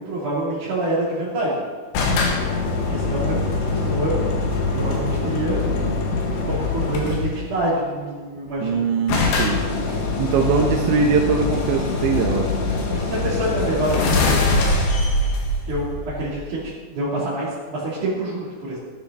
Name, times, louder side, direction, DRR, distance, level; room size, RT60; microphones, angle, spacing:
voice 1, 0.0-1.6 2.9-3.4 3.7-4.2 4.7-5.9 6.4-8.9 12.9-14.4 15.7-18.8, right 1 dB, 40° right, -11 dB, 4.6 m, -26 dB
sound 1, 1.9-7.5 8.5-8.6 8.7-8.8 9.1-16.6, left 3 dB, 60° left, 3.6 m, -23 dB
voice 2, 8.6-9.6 9.9-12.5, right 5 dB, 75° right, 0 dB, 3.2 m, -21 dB
18.0 x 11.5 x 4.4 m, 1.4 s
omnidirectional pair, 5.8 m